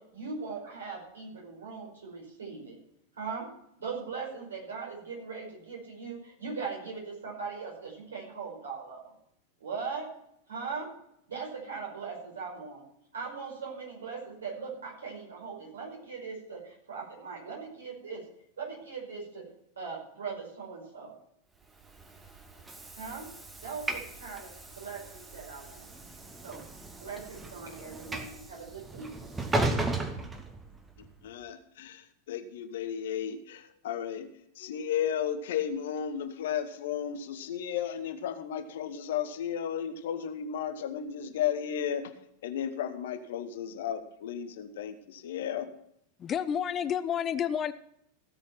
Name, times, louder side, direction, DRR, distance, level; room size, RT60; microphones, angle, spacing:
voice 1, 0.1-2.8 3.2-3.5 3.8-9.0 9.6-10.1 10.5-10.9 11.3-12.8 13.1-18.2 18.6-19.5 19.7-21.1 23.0-23.3 23.6-25.9 26.4-26.6 27.0-29.1, right 5 dB, 65° right, -1 dB, 5.1 m, -40 dB
Train / Sliding door, 21.8-31.1, right 2 dB, 15° right, 1.4 m, -36 dB
voice 2, 31.2-34.3 34.6-42.1 42.4-45.7, left 9 dB, 55° left, 9 dB, 1.1 m, -34 dB
voice 3, 46.2-47.7, left 8 dB, 25° left, 14 dB, 0.5 m, -30 dB
16.0 x 6.4 x 5.8 m, 0.75 s
figure-of-eight pair, 90°, 0 cm